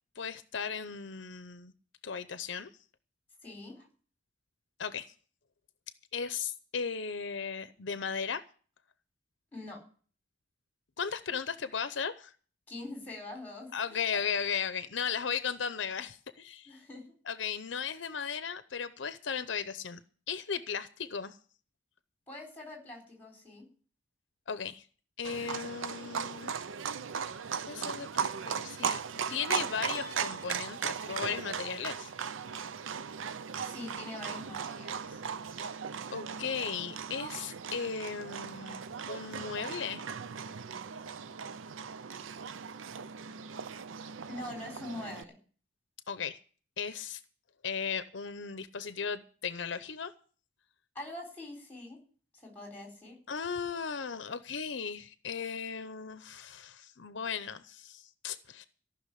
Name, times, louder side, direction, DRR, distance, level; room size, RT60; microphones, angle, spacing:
voice 1, 0.2-1.7 2.0-2.7 4.8-5.1 6.1-8.4 11.0-12.3 13.7-16.7 17.3-20.0 20.3-21.4 24.5-24.8 25.2-26.6 27.7-29.0 29.3-32.1 35.6-35.7 36.1-38.8 39.1-40.0 46.1-46.4 46.8-47.2 47.6-50.1 53.3-58.6, left 6 dB, 70° left, 12 dB, 0.7 m, -36 dB
voice 2, 3.4-3.9 9.5-9.8 12.7-14.0 16.6-17.1 22.3-23.7 33.6-35.2 44.3-45.4 50.9-52.0 52.3-53.2, left 2 dB, 10° left, 1 dB, 4.2 m, -44 dB
Livestock farm animals working animals, 25.2-45.2, right 7 dB, 90° right, 0.5 m, -38 dB
sound 1, 27.3-28.1 29.9-31.4, equal, 25° right, 2.9 m, -50 dB
14.5 x 6.2 x 10.0 m, 0.42 s
head